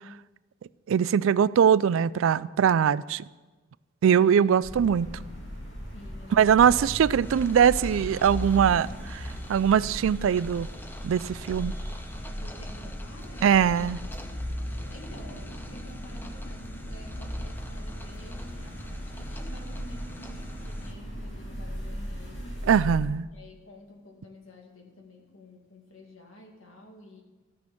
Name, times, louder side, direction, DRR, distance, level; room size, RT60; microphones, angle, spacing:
voice 1, 0.9-3.2 4.0-5.1 6.3-10.7 11.0-11.7 13.4-14.0 22.7-23.3, right 8 dB, 70° right, 0.3 m, -22 dB
voice 2, 4.2-4.5 5.9-6.7 12.4-13.5 14.7-22.6 23.3-27.2, left 1 dB, 75° left, 2.3 m, -49 dB
sound 1, 4.6-23.0, equal, 55° left, 2.9 m, -37 dB
sound 2, 7.2-20.9, left 1 dB, 10° left, 0.6 m, -47 dB
14.0 x 6.2 x 7.0 m
head